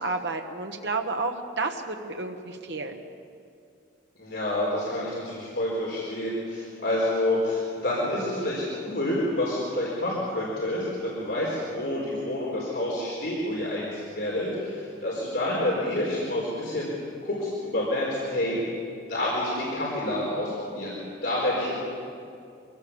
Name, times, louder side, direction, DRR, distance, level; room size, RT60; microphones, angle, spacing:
voice 1, 0.0-3.0, right 3 dB, 65° right, 3 dB, 1.3 m, -31 dB
voice 2, 4.2-16.9 17.2-18.6 19.1-21.8, left 1 dB, 60° left, -6 dB, 4.7 m, -28 dB
24.5 x 17.0 x 7.1 m, 2.4 s
head